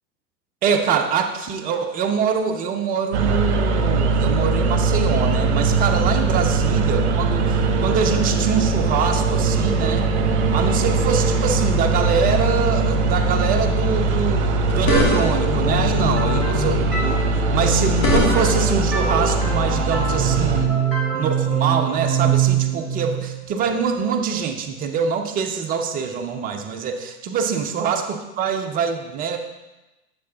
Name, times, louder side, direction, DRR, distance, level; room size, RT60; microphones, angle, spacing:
voice 1, 0.6-10.1 10.5-14.4 14.7-20.7 21.1-29.4, right 6 dB, 20° right, 5 dB, 0.6 m, -24 dB
sound 1, 3.1-20.6, right 3 dB, 55° right, 0.8 m, -21 dB
sound 2, 14.6-15.6 17.6-18.7, left 1 dB, 45° left, 1.7 m, -23 dB
sound 3, 14.9-24.4, right 5 dB, ahead, 2.4 m, -24 dB
9.5 x 6.9 x 2.8 m, 1.0 s
figure-of-eight pair, 90°, 42 cm